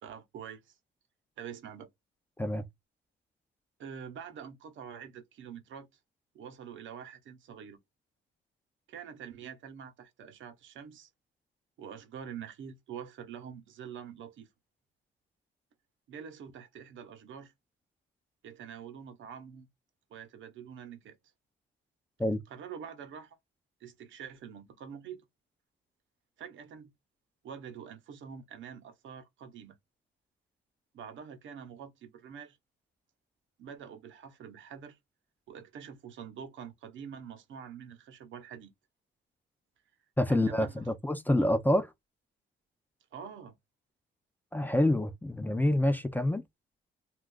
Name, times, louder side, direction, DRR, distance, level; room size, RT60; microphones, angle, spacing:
voice 1, 0.0-0.7 1.4-1.9 3.8-5.9 6.3-7.8 8.9-11.1 11.8-14.5 16.1-17.5 18.4-19.7 20.1-21.2 22.5-23.4 23.8-25.2 26.4-26.9 27.4-29.8 30.9-32.6 33.6-35.0 35.5-38.7 40.3-40.9 41.4-41.5 43.1-43.6, right 7 dB, 75° right, 0.8 m, -45 dB
voice 2, 40.2-41.9 44.5-46.4, left 1 dB, 10° left, 0.5 m, -27 dB
2.4 x 2.4 x 3.7 m
cardioid pair, 90°, 20 cm